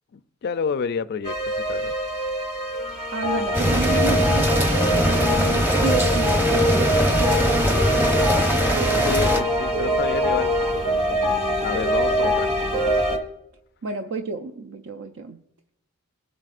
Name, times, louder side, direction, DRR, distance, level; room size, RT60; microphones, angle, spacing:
voice 1, 0.1-1.9 9.0-10.5 11.6-12.5, left 6 dB, 50° left, 0.4 m, -29 dB
sound 1, 1.2-13.2, equal, 25° right, 1.4 m, -24 dB
voice 2, 3.1-8.4 13.8-15.4, right 4 dB, 60° right, 0.5 m, -31 dB
sound 2, 3.5-9.4, equal, 10° right, 0.8 m, -21 dB
22.0 x 7.6 x 2.5 m
head